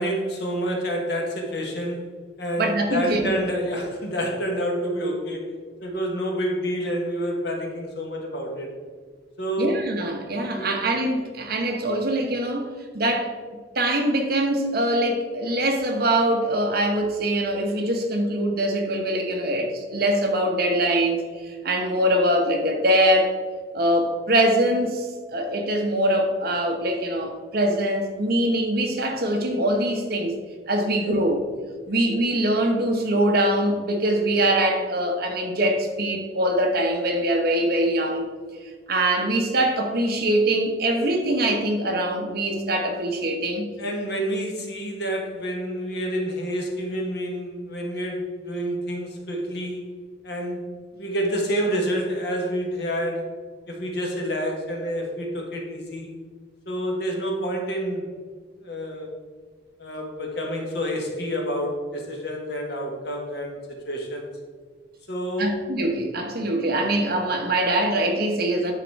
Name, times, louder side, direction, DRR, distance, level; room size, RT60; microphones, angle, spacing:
voice 1, 0.0-2.0 2.4-5.4 5.8-8.7 9.4-9.8 10.3-10.8 31.0-31.1 43.8-49.8 50.2-50.6 50.9-53.3 53.7-56.1 56.7-58.1 58.6-59.1 59.8-63.6 63.8-64.3 65.1-65.5, equal, 55° left, 1 dB, 1.4 m, -28 dB
voice 2, 2.6-3.3 9.6-12.7 12.9-13.3 13.7-23.4 23.7-30.4 30.7-31.4 31.9-38.3 38.9-43.7 44.1-44.2 65.4-68.7, right 1 dB, 50° right, 3 dB, 1.1 m, -23 dB
9.7 x 4.1 x 4.7 m, 1.5 s
head